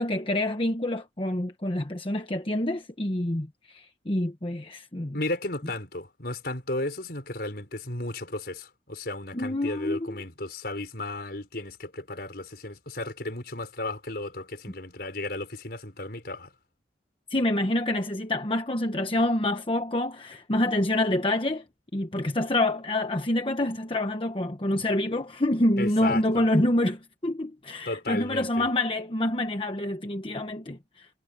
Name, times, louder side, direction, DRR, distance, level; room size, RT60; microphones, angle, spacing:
voice 1, 0.0-5.1 9.3-10.1 17.3-21.6 21.9-31.1, left 1 dB, 30° left, 1.1 m, -27 dB
voice 2, 5.1-16.5 25.8-26.4 27.9-28.7, left 2 dB, 60° left, 5.7 m, -34 dB
head